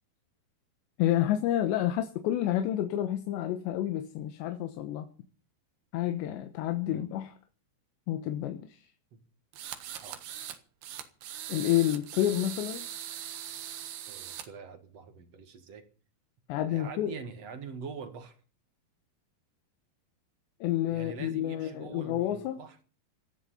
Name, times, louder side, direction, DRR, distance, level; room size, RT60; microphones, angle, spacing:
voice 1, 1.0-5.1 5.9-7.3 8.1-8.8 11.5-12.9 16.5-17.2 20.6-22.6, left 12 dB, 90° left, 3.4 m, -29 dB
sound 1, 9.5-10.6 10.8-14.5, right 10 dB, 70° right, 3.2 m, -40 dB
voice 2, 14.1-15.9 16.7-18.4 20.9-22.8, right 5 dB, 50° right, 2.1 m, -44 dB
18.0 x 13.0 x 5.6 m
omnidirectional pair, 4.9 m